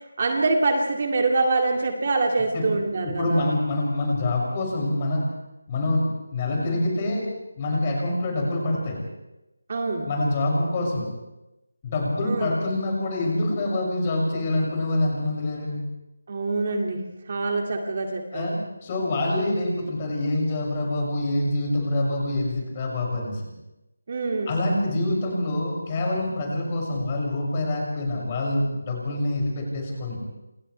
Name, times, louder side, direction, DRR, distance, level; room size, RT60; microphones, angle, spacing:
voice 1, 0.2-3.4 9.7-10.1 12.3-12.5 16.3-17.0 17.3-18.6 24.1-24.5, right 3 dB, 40° right, 2 dB, 2.2 m, -25 dB
voice 2, 3.0-5.3 5.7-7.3 7.5-9.0 10.0-11.1 11.8-15.8 18.3-23.4 24.5-30.2, left 1 dB, 25° left, -2 dB, 6.5 m, -26 dB
28.5 x 27.5 x 3.4 m, 0.97 s
figure-of-eight pair, 170°, 0 cm